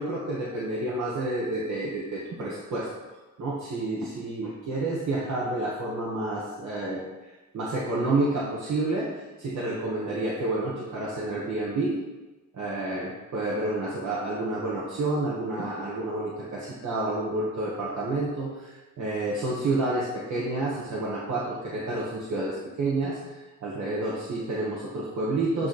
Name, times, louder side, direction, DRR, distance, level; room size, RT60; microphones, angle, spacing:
voice 1, 0.0-2.9 3.4-7.0 7.5-12.0 12.5-25.7, right 2 dB, 75° right, -6 dB, 1.2 m, -29 dB
8.8 x 3.1 x 4.1 m, 1.1 s
wide cardioid pair, 145°, 29 cm